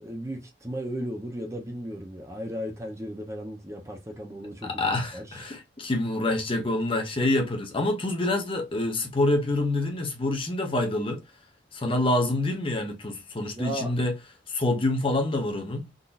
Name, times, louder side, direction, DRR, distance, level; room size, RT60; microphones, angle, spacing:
voice 1, 0.0-5.5 13.5-13.9, equal, 15° right, 0.7 m, -36 dB
voice 2, 4.6-11.2 11.7-14.2 14.5-15.9, left 2 dB, 30° left, 0.9 m, -26 dB
3.8 x 2.8 x 2.4 m
head